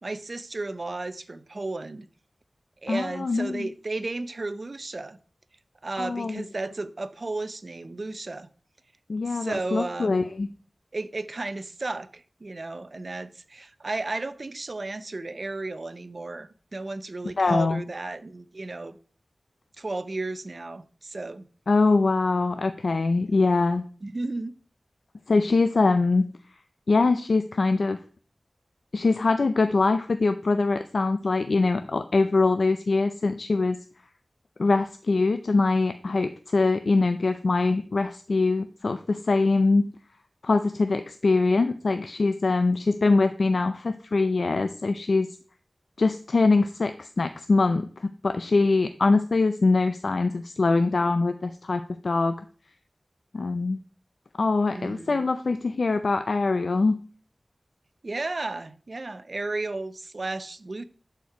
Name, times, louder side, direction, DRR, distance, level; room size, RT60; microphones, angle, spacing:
voice 1, 0.0-2.1 2.8-5.2 5.8-8.5 9.3-10.3 10.9-19.0 19.8-21.4 23.3-23.4 24.0-24.5 54.7-55.3 58.0-60.8, right 2 dB, 55° right, 0.7 m, -34 dB
voice 2, 2.9-3.7 6.0-6.4 9.1-10.5 17.4-17.8 21.7-23.8 25.3-26.3 26.9-28.0 28.9-33.8 34.6-39.9 40.4-45.4 46.0-52.4 53.3-53.8 54.4-57.0, left 3 dB, 80° left, 0.5 m, -23 dB
11.5 x 4.6 x 4.7 m
wide cardioid pair, 70°, 0 cm